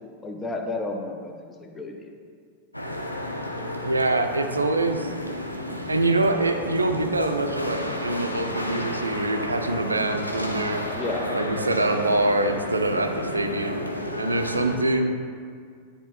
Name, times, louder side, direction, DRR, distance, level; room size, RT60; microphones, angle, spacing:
voice 1, 0.2-2.1 10.9-11.4, left 2 dB, 15° left, 3 dB, 0.6 m, -32 dB
sound 1, 2.7-14.8, left 1 dB, 90° left, 0.5 m, -32 dB
voice 2, 3.8-5.1 5.9-10.9 11.3-13.8 14.2-15.2, right 2 dB, 80° right, 6 dB, 0.4 m, -24 dB
9.6 x 3.4 x 2.9 m, 2.1 s
figure-of-eight pair, 90°, 0 cm